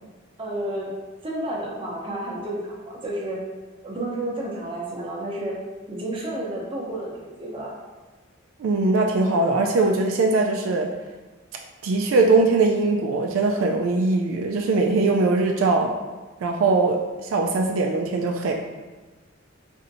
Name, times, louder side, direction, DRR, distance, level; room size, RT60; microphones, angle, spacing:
voice 1, 0.4-0.9 1.2-3.4 3.8-5.6 5.9-7.7, right 1 dB, 25° right, -4 dB, 0.7 m, -31 dB
voice 2, 8.6-10.9 11.8-15.9 16.4-18.5, right 3 dB, 75° right, 1 dB, 0.3 m, -21 dB
4.2 x 2.6 x 2.6 m, 1.2 s
head